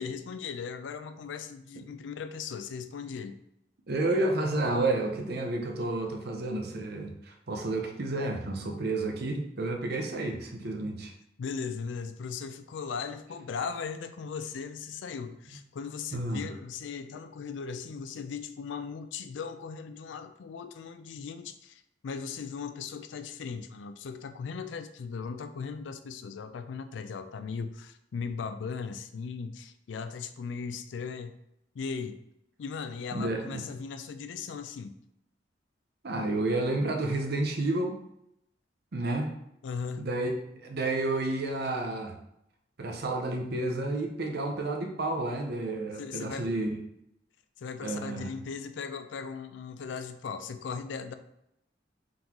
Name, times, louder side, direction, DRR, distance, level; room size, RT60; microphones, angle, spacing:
voice 1, 0.0-3.4 11.4-31.3 31.7-32.2 32.6-35.0 39.6-40.0 46.0-46.5 47.6-51.2, left 5 dB, 80° left, 10 dB, 0.4 m, -38 dB
voice 2, 3.9-11.1 16.1-16.4 33.1-33.6 36.0-38.0 38.9-39.3 40.0-42.1 42.8-46.8 47.8-48.3, right 2 dB, 60° right, 3 dB, 0.7 m, -30 dB
3.8 x 3.7 x 2.9 m, 0.79 s
head